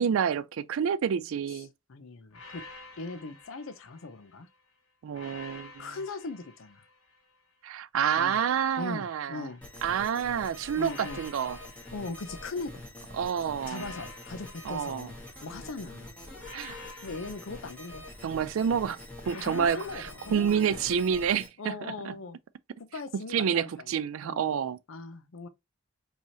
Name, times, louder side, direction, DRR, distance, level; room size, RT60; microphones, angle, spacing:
voice 1, 0.0-1.7 5.0-5.9 7.6-9.5 9.8-11.6 13.2-13.9 14.6-15.1 16.5-16.8 18.2-19.0 19.3-22.1 23.3-24.8, right 7 dB, 70° right, 0.3 m, -28 dB
voice 2, 1.9-2.6 3.0-4.5 5.8-6.8 8.2-8.4 8.8-9.6 10.8-11.2 11.9-12.8 13.7-16.1 17.0-18.0 19.3-20.9 21.6-22.4 22.8-24.0 24.2-24.5 24.9-25.5, left 3 dB, 70° left, 0.6 m, -40 dB
sound 1, 2.3-4.5 5.1-7.3 7.9-10.1 10.7-12.9 13.6-15.7 16.4-18.5 19.2-21.2, left 3 dB, 90° left, 1.4 m, -49 dB
sound 2, 9.6-21.5, left 1 dB, 5° left, 1.1 m, -45 dB
4.6 x 2.9 x 2.7 m
head